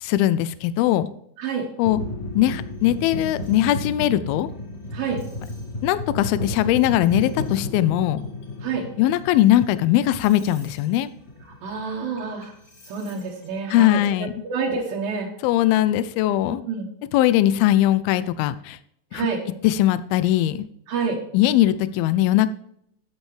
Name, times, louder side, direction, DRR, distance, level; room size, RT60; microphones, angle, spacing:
voice 1, 0.0-1.1 1.8-2.0 2.4-4.5 5.8-8.2 9.0-11.1 13.7-14.3 15.4-16.6 17.1-18.8 19.1-19.3 19.6-20.7 21.3-22.5, left 13 dB, 85° left, 14 dB, 2.4 m, -20 dB
sound 1, 1.8-13.5, left 2 dB, 40° left, 3.0 m, -33 dB
voice 2, 11.6-12.5 12.9-15.3 16.7-16.9 19.1-19.4 20.9-21.2, right 5 dB, 75° right, -2 dB, 3.0 m, -28 dB
12.5 x 8.2 x 3.2 m, 0.72 s
omnidirectional pair, 4.3 m